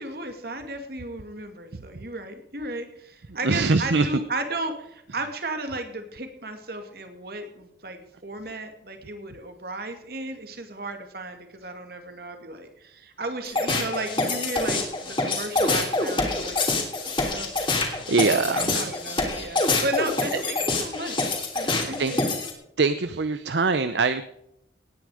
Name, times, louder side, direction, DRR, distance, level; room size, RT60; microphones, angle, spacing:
voice 1, 0.0-17.5 18.2-22.4, right 2 dB, 55° right, 6 dB, 2.3 m, -34 dB
voice 2, 3.4-4.1 17.0-17.4 17.8-19.0 22.0-22.1 22.8-24.2, right 4 dB, 75° right, 11 dB, 0.7 m, -24 dB
sound 1, 13.4-22.5, left 3 dB, 30° left, 2.9 m, -26 dB
18.0 x 10.0 x 4.9 m, 0.79 s
head